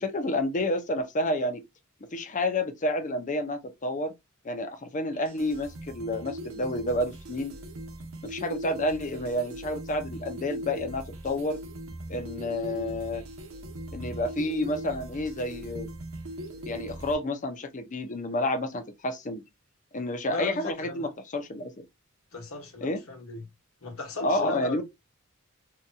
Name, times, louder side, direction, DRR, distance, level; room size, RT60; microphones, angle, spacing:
voice 1, 0.0-1.6 2.1-4.1 4.4-7.6 8.2-11.6 12.1-13.2 13.9-15.9 16.7-19.4 19.9-21.8 22.8-23.0 24.2-24.8, left 1 dB, 35° left, 0.6 m, -30 dB
sound 1, 5.1-17.1, right 1 dB, 65° right, 0.8 m, -40 dB
voice 2, 20.3-21.1 22.3-23.5 23.8-24.8, left 3 dB, 65° left, 1.1 m, -37 dB
2.8 x 2.6 x 2.2 m
head